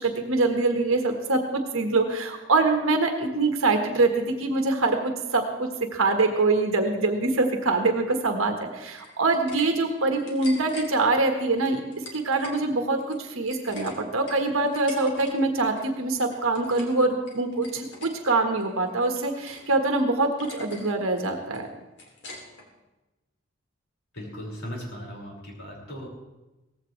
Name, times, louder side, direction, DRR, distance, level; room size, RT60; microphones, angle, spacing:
voice 1, 0.0-11.8 12.1-21.7, right 3 dB, 75° right, 4 dB, 1.5 m, -24 dB
sound 1, 8.8-9.7 10.0-10.9 11.6-12.6 12.9-15.3 15.6-15.9 16.3-17.0 17.3-18.1 18.6-19.7 20.0-20.1 20.4-20.9 21.2-22.7, left 2 dB, 60° left, 3.0 m, -43 dB
voice 2, 24.1-26.1, equal, 80° left, -3 dB, 5.6 m, -37 dB
18.0 x 15.0 x 3.3 m, 1.1 s
head